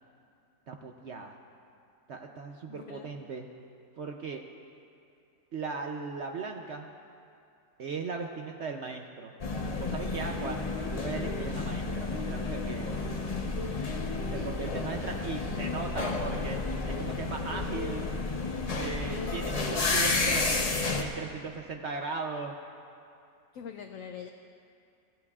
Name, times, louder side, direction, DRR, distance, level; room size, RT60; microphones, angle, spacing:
voice 1, 0.7-1.3 2.1-3.5 4.0-4.4 5.5-6.9 7.8-9.3 9.8-13.0 14.3-18.1 18.7-22.6, right 4 dB, 60° right, 3 dB, 0.7 m, -38 dB
voice 2, 2.7-3.1 14.3-14.5 23.5-24.3, left 8 dB, 65° left, 5 dB, 0.8 m, -43 dB
sound 1, 9.4-21.0, left 3 dB, 40° left, 0.5 m, -31 dB
23.5 x 15.5 x 2.4 m, 2.5 s
omnidirectional pair, 1.8 m